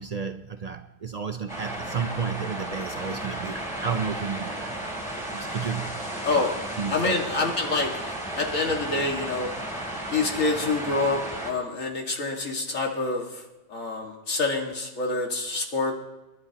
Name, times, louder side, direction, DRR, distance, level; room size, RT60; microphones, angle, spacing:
voice 1, 0.0-4.8 5.3-6.0 6.3-6.5 6.8-7.2 11.7-11.8, right 6 dB, 55° right, 0.4 m, -32 dB
sound 1, 1.5-11.5, right 1 dB, 5° left, 3.5 m, -34 dB
voice 2, 6.9-9.5 10.1-15.9, left 3 dB, 85° left, 2.4 m, -27 dB
28.0 x 11.5 x 2.9 m
omnidirectional pair, 1.3 m